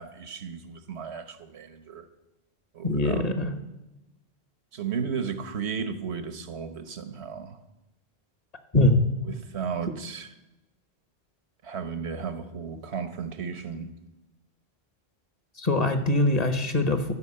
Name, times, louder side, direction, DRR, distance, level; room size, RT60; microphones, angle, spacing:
voice 1, 0.0-2.1 2.7-3.3 4.7-7.6 9.2-10.3 11.6-13.9, right 6 dB, 90° right, 1.3 m, -34 dB
voice 2, 2.8-3.5 8.7-9.0 15.6-17.1, left 2 dB, 40° left, 1.2 m, -22 dB
13.0 x 6.1 x 8.6 m
omnidirectional pair, 1.1 m